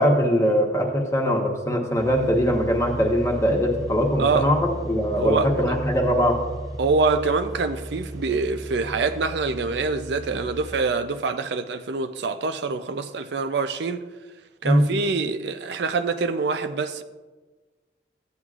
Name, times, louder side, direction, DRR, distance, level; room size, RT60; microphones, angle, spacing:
voice 1, 0.0-6.4 14.6-15.0, equal, 15° left, 1.1 m, -21 dB
sound 1, 2.0-10.8, equal, 20° right, 0.6 m, -36 dB
voice 2, 5.2-5.8 6.8-14.1 14.6-17.0, right 4 dB, 75° right, 0.5 m, -25 dB
14.5 x 9.3 x 2.4 m
head